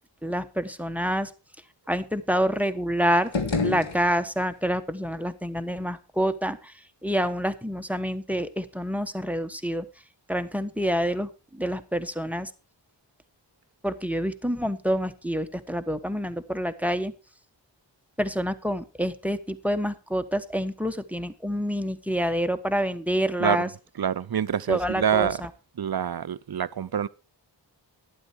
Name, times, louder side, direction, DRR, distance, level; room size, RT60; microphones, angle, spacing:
voice 1, 0.2-1.3 1.9-3.3 3.6-6.6 7.0-9.8 10.3-12.5 13.8-17.1 18.2-23.7 24.7-25.3, equal, 5° right, 1.1 m, -27 dB
sound 1, 3.2-4.6, left 4 dB, 80° left, 2.0 m, -29 dB
voice 2, 24.0-25.4 25.8-27.1, right 8 dB, 55° right, 0.6 m, -26 dB
12.0 x 9.8 x 4.5 m
wide cardioid pair, 55°, 45 cm